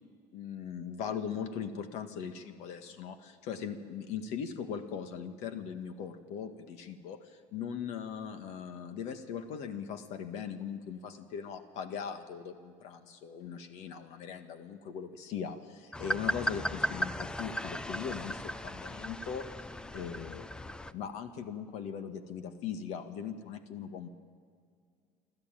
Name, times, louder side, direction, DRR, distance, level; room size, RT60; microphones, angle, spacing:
voice 1, 0.3-19.4 19.9-24.1, left 7 dB, 65° left, 8 dB, 1.6 m, -40 dB
sound 1, 15.9-20.9, left 1 dB, 5° left, 0.5 m, -36 dB
25.5 x 13.5 x 9.2 m, 2.1 s
cardioid pair, 140°, 13 cm